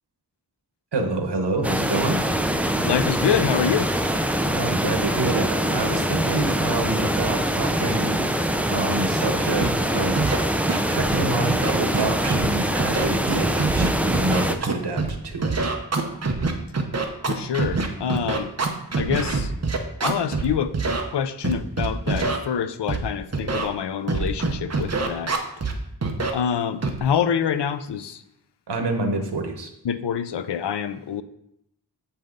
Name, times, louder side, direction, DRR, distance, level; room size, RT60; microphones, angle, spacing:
voice 1, 0.9-2.2 4.5-8.4 8.7-10.3 10.9-15.7 28.7-29.7, right 2 dB, 90° right, 4 dB, 1.1 m, -27 dB
sound 1, 1.6-14.6, right 1 dB, 5° right, 0.5 m, -24 dB
voice 2, 2.8-3.9 17.3-18.5 19.0-19.5 20.0-20.8 21.1-25.3 26.3-28.2 29.8-31.2, left 8 dB, 85° left, 12 dB, 0.5 m, -26 dB
Scratching (performance technique), 9.6-9.7 10.2-10.4 10.7-11.2 11.5-12.5 12.8-15.1 15.4-20.5 20.7-21.0 21.4-22.4 22.9-23.0 23.3-23.7 24.1-25.7 26.0-26.3 26.8-27.0, right 4 dB, 40° right, 0.9 m, -24 dB
7.8 x 5.6 x 3.8 m, 0.79 s
wide cardioid pair, 85°, 40 cm